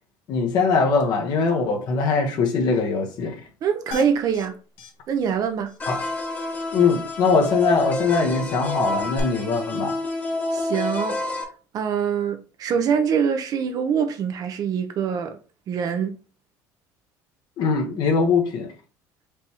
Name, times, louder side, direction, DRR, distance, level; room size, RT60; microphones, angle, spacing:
voice 1, 0.3-3.4 5.9-6.0 6.7-10.0 17.6-18.7, left 4 dB, 60° left, 1.3 m, -21 dB
voice 2, 3.6-4.6 5.1-5.7 10.5-11.2 11.7-15.4 15.7-16.2, right 7 dB, 50° right, 0.7 m, -24 dB
sound 1, 3.9-4.5 4.8-4.9 5.2-5.3 5.7-5.8 9.1-9.2, left 7 dB, 80° left, 0.9 m, -36 dB
sound 2, 5.8-11.4, left 2 dB, 20° left, 1.1 m, -28 dB
5.1 x 3.4 x 3.0 m
supercardioid pair, 105°, 8 cm